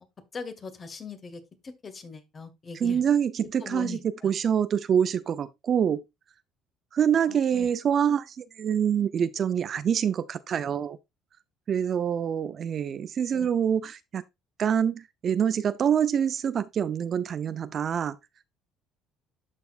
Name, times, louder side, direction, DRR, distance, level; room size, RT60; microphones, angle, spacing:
voice 1, 0.3-3.0 3.4-4.4 5.7-5.8 7.3-7.7 13.3-13.5, left 5 dB, 30° left, 1.5 m, -41 dB
voice 2, 2.8-6.0 6.9-11.0 11.7-14.2 14.6-18.2, right 8 dB, 45° right, 0.5 m, -26 dB
12.5 x 4.3 x 2.4 m
cardioid pair, 110°, 0 cm